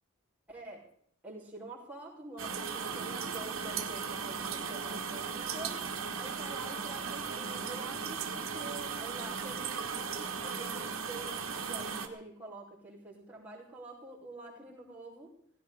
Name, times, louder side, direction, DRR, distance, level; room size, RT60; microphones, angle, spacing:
voice 1, 0.5-0.9 1.2-5.9 6.2-15.3, right 2 dB, 5° right, -7 dB, 5.4 m, -47 dB
sound 1, 2.4-12.1, right 6 dB, 65° right, 1.6 m, -37 dB
18.0 x 16.5 x 4.1 m, 0.67 s
head